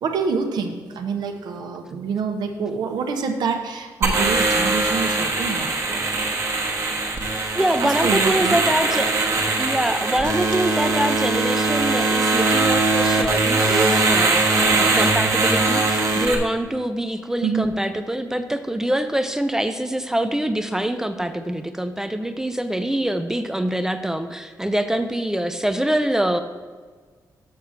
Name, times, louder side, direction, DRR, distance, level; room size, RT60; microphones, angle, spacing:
voice 1, 0.0-6.1 7.8-8.6 17.4-17.7, right 5 dB, 85° right, 5 dB, 0.9 m, -26 dB
sound 1, 4.0-16.4, right 3 dB, 45° right, 1.2 m, -21 dB
voice 2, 7.5-26.4, right 1 dB, 5° right, 8 dB, 0.3 m, -24 dB
6.6 x 5.7 x 6.4 m, 1.5 s
wide cardioid pair, 160°, 7 cm